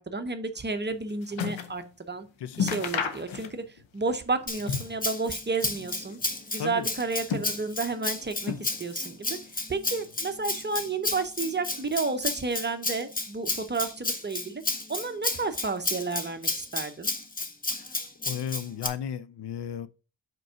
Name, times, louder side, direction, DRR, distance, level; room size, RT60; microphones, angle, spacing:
voice 1, 0.0-2.3 2.6-6.2 6.5-14.6 14.9-17.1, right 3 dB, 25° right, 0.7 m, -31 dB
sound 1, 0.6-1.8 2.1-2.2 2.5-3.8 4.1-5.1 5.4-6.3 6.9-7.9 8.4-9.1 9.4-10.2 10.9-11.0, left 6 dB, 80° left, 1.0 m, -34 dB
voice 2, 2.4-2.7 6.6-6.8 17.7-17.9 18.2-19.9, left 9 dB, 65° left, 0.5 m, -34 dB
Rattle (instrument), 4.5-18.9, left 2 dB, 20° left, 0.8 m, -32 dB
5.3 x 4.5 x 5.5 m
wide cardioid pair, 140°, 45 cm